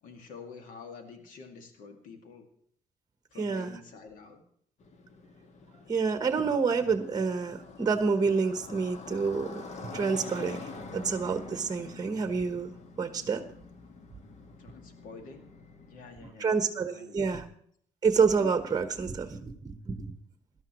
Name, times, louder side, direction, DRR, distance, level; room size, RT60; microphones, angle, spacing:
voice 1, 0.0-2.4 3.3-4.4 14.6-15.4 15.8-16.7 16.9-17.4, left 5 dB, 85° left, 5 dB, 2.1 m, -48 dB
voice 2, 3.4-3.8 5.9-12.7 13.0-13.4 16.4-17.4 18.0-20.1, right 5 dB, 30° right, 8 dB, 1.1 m, -28 dB
Motorcycle, 4.8-16.2, left 3 dB, 60° left, 1.6 m, -46 dB
18.0 x 12.5 x 3.1 m, 0.63 s
cardioid pair, 90°, 13 cm